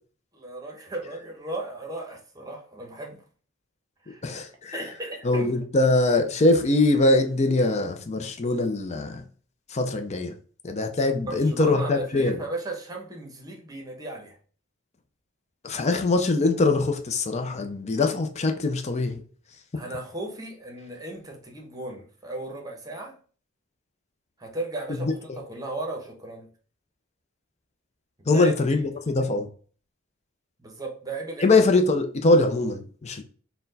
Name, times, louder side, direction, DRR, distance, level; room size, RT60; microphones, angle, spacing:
voice 1, 0.3-3.2 4.1-4.2 4.7-5.5 11.3-14.4 19.7-23.1 24.4-26.5 28.2-28.5 30.6-31.5, right 2 dB, 20° right, 0.9 m, -36 dB
voice 2, 4.2-4.8 5.2-9.2 9.7-10.3 10.6-12.4 15.6-19.2 24.9-25.1 28.3-29.5 31.4-33.2, left 2 dB, 30° left, 0.5 m, -22 dB
4.3 x 2.2 x 3.9 m
head